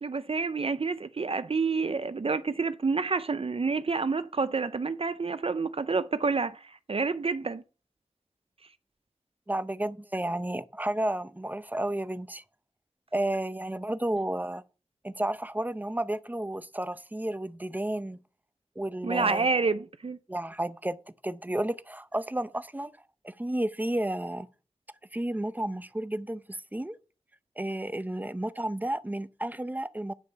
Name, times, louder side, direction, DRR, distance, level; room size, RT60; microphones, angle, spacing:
voice 1, 0.0-7.6 19.0-20.2, right 4 dB, 55° right, 0.5 m, -28 dB
voice 2, 9.5-12.4 13.1-14.6 15.0-18.2 18.8-19.5 20.3-22.9 23.2-24.5 25.1-27.0 27.6-30.1, right 1 dB, 15° right, 0.6 m, -32 dB
9.2 x 5.1 x 6.7 m
wide cardioid pair, 70°, 11 cm